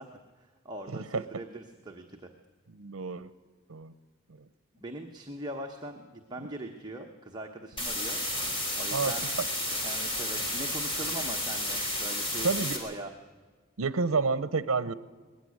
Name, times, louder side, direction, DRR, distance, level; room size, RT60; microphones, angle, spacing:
voice 1, 0.0-2.3 4.8-8.2 8.8-9.3 9.8-13.1, right 1 dB, 20° right, 2 dB, 1.0 m, -41 dB
voice 2, 0.9-1.2 2.7-3.3 3.7-3.9 4.3-4.4 8.9-9.1 12.4-12.8 13.8-14.9, right 4 dB, 80° right, 15 dB, 0.7 m, -29 dB
sound 1, 7.8-12.8, left 1 dB, 25° left, 3.7 m, -32 dB
20.0 x 15.0 x 9.5 m, 1.4 s
head